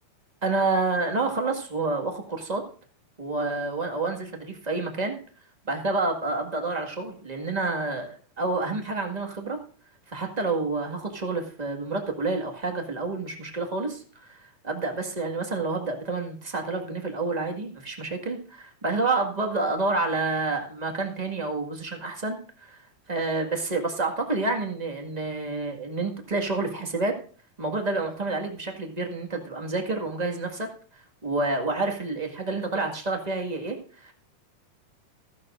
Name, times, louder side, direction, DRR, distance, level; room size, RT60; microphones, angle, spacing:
voice 1, 0.4-2.6 3.2-5.2 5.6-9.6 10.1-22.8 23.1-27.1 27.6-30.7 30.9-34.1, right 3 dB, 20° right, 2 dB, 1.1 m, -29 dB
15.0 x 14.5 x 2.5 m, 0.42 s
omnidirectional pair, 3.7 m